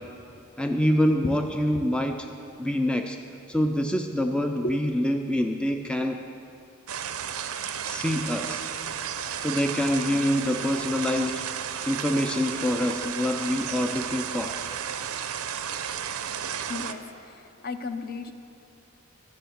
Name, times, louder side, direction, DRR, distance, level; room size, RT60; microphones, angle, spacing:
voice 1, 0.6-2.3 2.6-3.2 3.5-6.2 7.8-8.7 9.4-11.5 11.9-14.6, left 1 dB, 5° left, 5 dB, 0.3 m, -26 dB
sound 1, 6.9-16.9, right 8 dB, 85° right, 0.6 m, -33 dB
voice 2, 16.7-18.3, left 2 dB, 45° left, 8 dB, 0.6 m, -35 dB
11.5 x 6.4 x 9.2 m, 2.7 s
head